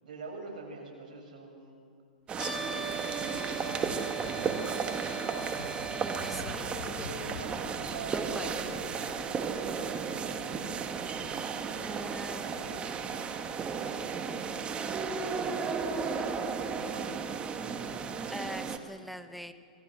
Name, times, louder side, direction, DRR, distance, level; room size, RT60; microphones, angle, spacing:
voice 1, 0.0-1.8 2.5-4.6 7.0-10.7 11.6-14.2 16.6-17.4, right 3 dB, 70° right, 0 dB, 7.5 m, -46 dB
sound 1, 2.3-6.4, right 3 dB, 15° left, 7.3 m, -40 dB
sound 2, 2.3-18.8, right 5 dB, 20° right, 1.7 m, -34 dB
sound 3, 3.0-4.4 4.9-5.0 5.4-7.8, left 5 dB, 75° left, 3.3 m, -45 dB
voice 2, 5.9-6.7 8.1-8.5 11.8-12.6 18.3-19.5, equal, ahead, 9 dB, 1.2 m, -42 dB
27.0 x 20.0 x 6.4 m, 2.3 s
hypercardioid pair, 120°, 5 cm